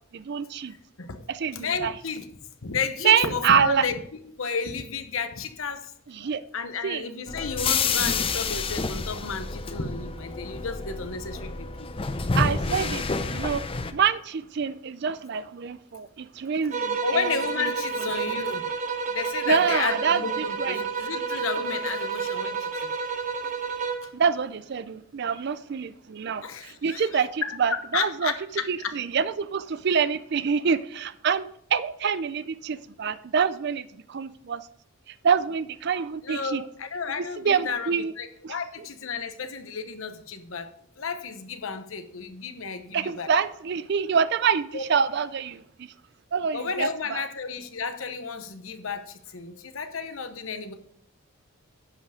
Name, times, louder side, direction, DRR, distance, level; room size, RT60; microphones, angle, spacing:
voice 1, 0.1-0.7 1.3-1.9 3.0-3.9 6.1-6.4 6.8-7.0 12.3-13.6 13.9-17.3 19.5-20.8 24.1-28.3 28.7-34.6 35.2-36.6 37.4-38.1 38.4-38.5 42.9-45.9 46.3-47.3, right 6 dB, 55° right, 0.4 m, -26 dB
voice 2, 1.5-2.3 2.6-4.0 4.4-5.9 6.2-11.9 12.6-12.8 17.0-18.6 19.1-22.9 26.4-27.1 27.4-29.0 36.2-43.3 44.7-44.8 46.5-50.7, left 5 dB, 75° left, 1.0 m, -32 dB
sound 1, 7.3-13.9, left 4 dB, 25° left, 0.5 m, -29 dB
sound 2, 16.7-24.2, right 5 dB, 35° right, 1.0 m, -30 dB
10.5 x 5.7 x 4.9 m
head